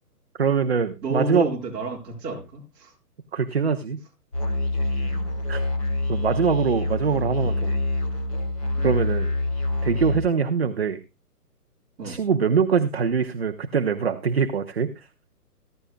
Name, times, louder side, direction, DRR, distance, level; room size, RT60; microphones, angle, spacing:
voice 1, 0.4-1.5 3.3-4.0 5.5-5.6 6.1-7.7 8.8-9.3 9.8-11.0 12.0-15.1, right 6 dB, 40° right, 0.8 m, -23 dB
voice 2, 1.0-2.9 5.0-5.3 8.8-8.9 12.0-12.2, right 2 dB, 10° right, 3.0 m, -31 dB
Musical instrument, 4.3-10.2, left 2 dB, 20° left, 1.9 m, -26 dB
15.5 x 14.5 x 2.2 m
hypercardioid pair, 180°, 47 cm